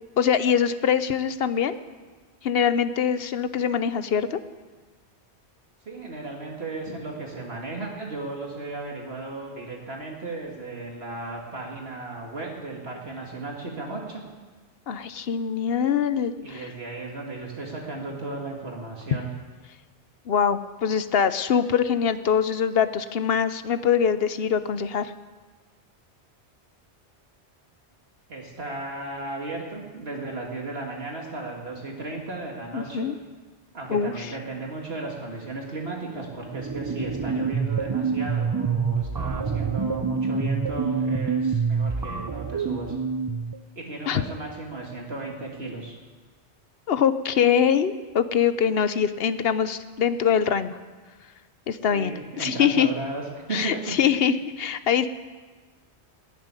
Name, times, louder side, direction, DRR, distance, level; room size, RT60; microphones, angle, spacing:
voice 1, 0.2-1.8 2.4-4.4 14.9-16.7 20.3-25.1 32.7-33.1 33.9-34.1 44.1-44.2 46.9-50.7 51.7-52.9 53.5-55.1, left 7 dB, 60° left, 12 dB, 0.9 m, -23 dB
voice 2, 5.9-14.2 16.3-19.3 28.3-33.1 33.7-42.9 43.8-46.0 51.9-53.2 53.5-54.3, right 3 dB, 65° right, -1 dB, 2.3 m, -35 dB
sound 1, 36.5-43.6, right 5 dB, 30° right, 0.4 m, -26 dB
20.0 x 7.5 x 9.7 m, 1.4 s
omnidirectional pair, 1.1 m